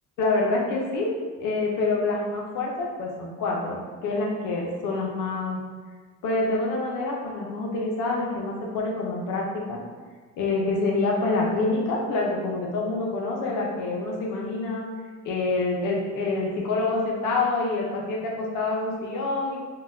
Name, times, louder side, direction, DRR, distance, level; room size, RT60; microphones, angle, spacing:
voice 1, 0.2-1.1 1.4-5.6 6.2-9.8 10.4-14.9 15.2-19.6, left 3 dB, 85° left, -2 dB, 0.6 m, -26 dB
3.7 x 2.2 x 2.5 m, 1.5 s
cardioid pair, 90°, 30 cm